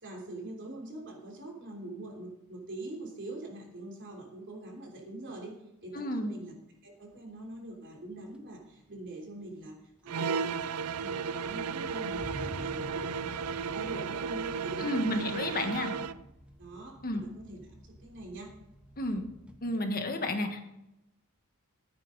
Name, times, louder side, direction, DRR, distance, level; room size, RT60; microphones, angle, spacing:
voice 1, 0.0-6.5 6.8-9.8 10.0-10.6 11.0-15.4 16.6-18.5, right 2 dB, 55° right, 0 dB, 3.4 m, -44 dB
voice 2, 5.9-6.4 14.8-15.9 17.0-17.2 19.0-19.2 19.6-20.7, left 1 dB, 40° left, 5 dB, 1.5 m, -31 dB
sound 1, 7.7-7.8 8.3-9.1 9.4-10.6 10.9-19.6, equal, 5° right, 1.1 m, -50 dB
sound 2, 10.1-16.2, right 5 dB, 85° right, 0.5 m, -34 dB
14.5 x 9.3 x 4.0 m, 0.90 s
head